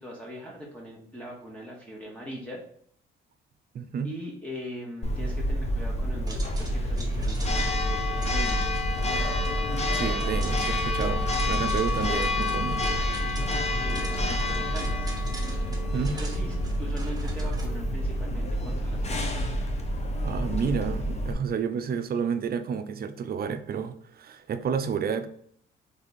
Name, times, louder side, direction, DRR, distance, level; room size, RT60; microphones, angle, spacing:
voice 1, 0.0-2.6 4.0-8.7 12.1-12.2 13.7-15.1 15.9-19.4, equal, 5° left, -3 dB, 1.0 m, -41 dB
voice 2, 3.7-4.1 9.9-12.9 15.7-16.1 20.2-25.3, right 6 dB, 50° right, 10 dB, 0.5 m, -30 dB
Church bell, 5.0-21.3, left 1 dB, 35° left, 0.8 m, -28 dB
sound 1, 6.3-17.7, right 2 dB, 20° right, 1.1 m, -45 dB
3.5 x 3.4 x 4.1 m, 0.62 s
cardioid pair, 90°, 20 cm